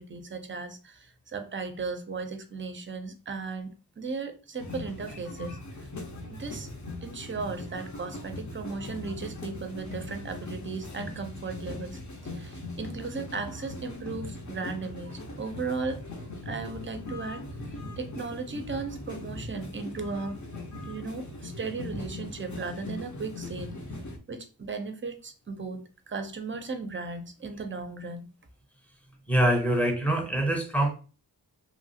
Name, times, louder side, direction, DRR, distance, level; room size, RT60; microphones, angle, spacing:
voice 1, 0.0-5.9 6.3-6.7 7.0-16.0 16.4-17.4 17.7-20.4 20.8-23.7 24.3-25.8 26.1-28.3, right 4 dB, 30° right, 8 dB, 0.5 m, -36 dB
sound 1, 4.6-24.2, left 2 dB, 45° left, 0.7 m, -40 dB
voice 2, 29.3-30.9, right 1 dB, 5° left, 2 dB, 0.7 m, -24 dB
3.1 x 2.4 x 2.6 m, 0.35 s
wide cardioid pair, 75°, 39 cm